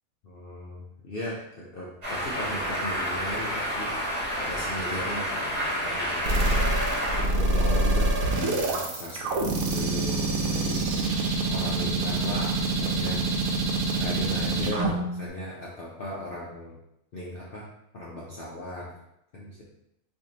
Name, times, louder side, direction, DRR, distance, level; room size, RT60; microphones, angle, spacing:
voice 1, 0.2-4.0 4.4-11.2 11.5-13.7 14.0-16.8 17.1-17.7 17.9-18.9 19.3-19.6, left 1 dB, 55° left, -5 dB, 0.6 m, -37 dB
sound 1, 2.0-7.2, equal, 25° right, 1.0 m, -29 dB
sound 2, 6.3-15.3, right 2 dB, 85° right, 1.1 m, -26 dB
4.5 x 2.6 x 2.7 m, 0.83 s
omnidirectional pair, 1.5 m